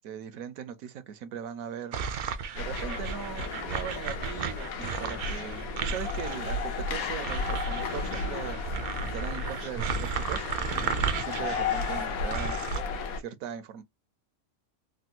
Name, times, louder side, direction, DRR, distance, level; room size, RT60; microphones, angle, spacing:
voice 1, 0.0-2.0 2.5-8.6 9.1-10.4 11.1-12.6 13.2-13.8, right 9 dB, 80° right, 1.0 m, -39 dB
sound 1, 1.9-12.8, right 6 dB, 65° right, 0.6 m, -35 dB
sound 2, 2.6-13.2, left 3 dB, 90° left, 1.2 m, -33 dB
3.4 x 2.2 x 2.8 m
omnidirectional pair, 1.4 m